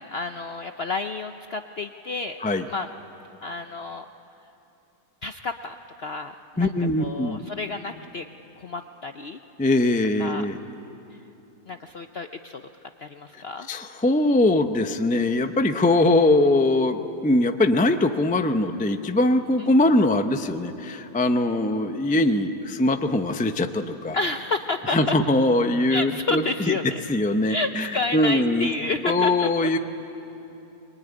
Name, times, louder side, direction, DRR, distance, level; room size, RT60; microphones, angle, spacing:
voice 1, 0.0-2.4 2.7-2.9 3.4-4.1 5.2-6.7 7.0-8.3 8.6-9.4 10.2-10.5 11.7-12.6 13.0-13.7 19.6-19.7 24.1-25.1 25.9-27.0 27.5-29.8, left 3 dB, 60° left, 7 dB, 0.6 m, -30 dB
voice 2, 6.6-7.4 9.6-10.6 13.3-13.4 13.7-24.2 24.9-26.4 27.1-28.7 29.0-29.8, left 2 dB, 15° left, 7 dB, 0.3 m, -22 dB
24.0 x 22.5 x 9.8 m, 3.0 s
omnidirectional pair, 1.9 m